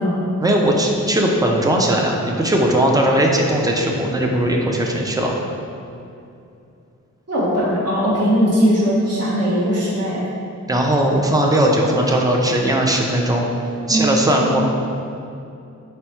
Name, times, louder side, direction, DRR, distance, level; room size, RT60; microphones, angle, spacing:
voice 1, 0.4-5.3 10.7-13.5 13.9-14.6, right 1 dB, 15° right, 0 dB, 0.3 m, -18 dB
voice 2, 7.3-10.2 13.9-14.2, equal, 55° right, -8 dB, 1.0 m, -19 dB
4.4 x 2.1 x 4.2 m, 2.6 s
wide cardioid pair, 145°, 30 cm